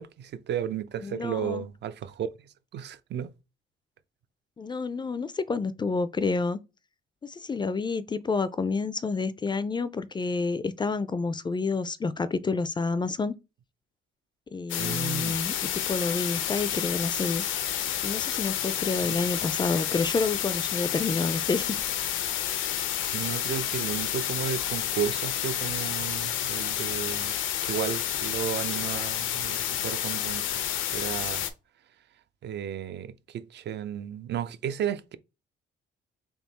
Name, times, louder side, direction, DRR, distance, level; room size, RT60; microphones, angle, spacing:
voice 1, 0.0-3.3 14.8-15.4 23.1-27.3 27.6-30.5 30.9-31.4 32.4-35.2, right 9 dB, 60° right, 0.5 m, -33 dB
voice 2, 1.0-1.6 4.6-6.6 7.2-13.3 14.5-17.4 18.0-21.8, left 4 dB, 25° left, 0.3 m, -29 dB
sound 1, 14.7-31.5, left 11 dB, 85° left, 0.6 m, -30 dB
3.6 x 2.7 x 4.0 m
cardioid pair, 90°, 20 cm